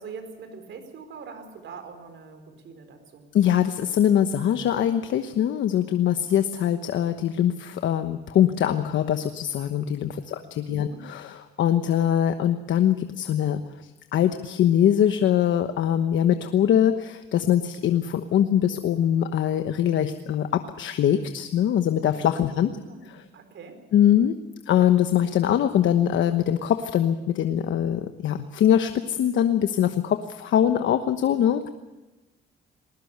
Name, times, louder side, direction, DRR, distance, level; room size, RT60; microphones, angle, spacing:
voice 1, 0.0-3.2 10.3-11.0 22.5-23.8, right 5 dB, 70° right, 7 dB, 4.6 m, -43 dB
voice 2, 3.3-13.6 14.1-22.7 23.1-23.2 23.9-24.4 24.7-31.7, left 10 dB, 75° left, 8 dB, 1.2 m, -22 dB
20.5 x 18.5 x 8.2 m, 1.1 s
cardioid pair, 90°, 20 cm